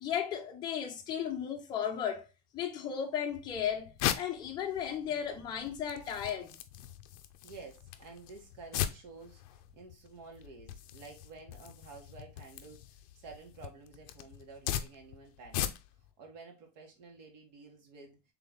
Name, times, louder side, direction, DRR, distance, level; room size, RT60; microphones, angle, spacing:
voice 1, 0.0-2.3 2.5-6.6, left 8 dB, 20° left, 0.7 m, -35 dB
sound 1, 3.3-16.1, left 11 dB, 55° left, 0.5 m, -40 dB
voice 2, 7.4-15.7 16.2-18.2, right 4 dB, 90° right, 1.7 m, -51 dB
4.1 x 3.5 x 3.5 m
supercardioid pair, 180°, 21 cm